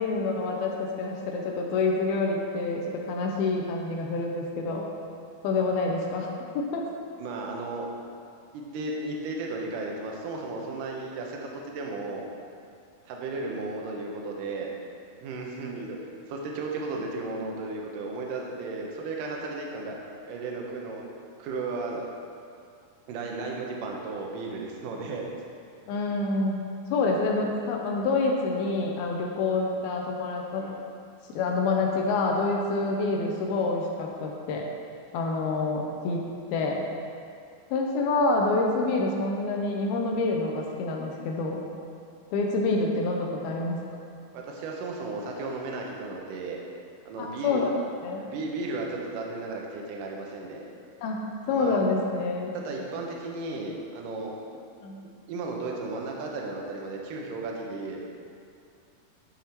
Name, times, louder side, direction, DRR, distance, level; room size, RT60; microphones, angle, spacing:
voice 1, 0.0-4.8 5.4-6.3 6.5-6.8 25.9-26.6 26.9-30.7 31.3-34.7 35.1-36.8 37.7-41.7 42.3-43.8 47.2-47.7 48.0-48.3 51.0-52.6 54.8-55.0, left 3 dB, 80° left, 0 dB, 2.6 m, -27 dB
voice 2, 7.2-7.9 8.5-12.3 13.1-14.7 15.2-16.0 16.3-20.0 20.3-21.0 21.4-22.1 23.1-25.2 30.6-30.8 44.3-46.6 47.1-47.7 48.2-50.6 51.5-51.8 52.5-54.3 55.3-58.0, right 3 dB, 70° right, 0 dB, 2.3 m, -34 dB
11.0 x 5.7 x 4.5 m, 2.4 s
omnidirectional pair, 4.5 m